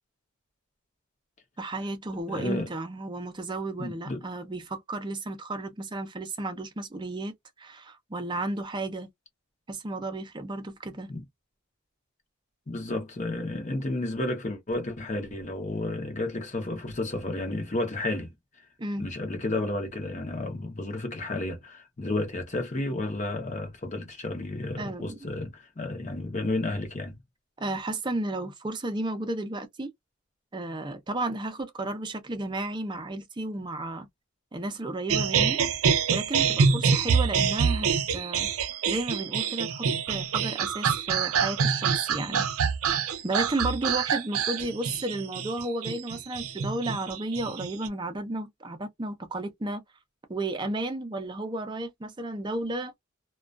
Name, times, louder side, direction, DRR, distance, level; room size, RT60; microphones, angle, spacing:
voice 1, 1.6-9.1 9.7-11.1 18.8-19.1 24.8-25.2 27.6-29.9 30.5-34.1 34.5-35.6 36.1-38.5 38.9-42.5 42.9-49.8 50.3-52.9, right 2 dB, 20° right, 0.5 m, -33 dB
voice 2, 2.3-2.7 3.8-4.3 11.1-11.2 12.7-18.3 19.0-27.2, left 2 dB, 35° left, 0.7 m, -32 dB
sound 1, 35.1-47.9, right 6 dB, 80° right, 0.5 m, -26 dB
2.3 x 2.2 x 2.3 m
head